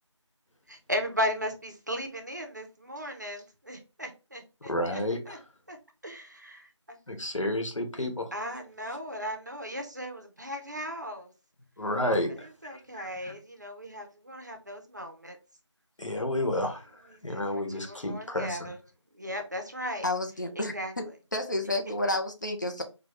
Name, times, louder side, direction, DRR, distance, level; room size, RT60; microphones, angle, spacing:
voice 1, 0.7-5.4 5.7-5.8 6.0-7.0 8.3-11.3 12.4-15.4 17.1-18.8 19.1-20.1 20.6-20.9, equal, 35° right, 0.6 m, -36 dB
voice 2, 4.6-5.4 7.1-8.3 11.8-13.3 16.0-18.7, left 1 dB, 80° left, 1.1 m, -31 dB
voice 3, 20.0-21.0 21.3-22.8, left 2 dB, 40° left, 0.6 m, -30 dB
4.1 x 2.2 x 3.1 m
figure-of-eight pair, 170°, 16 cm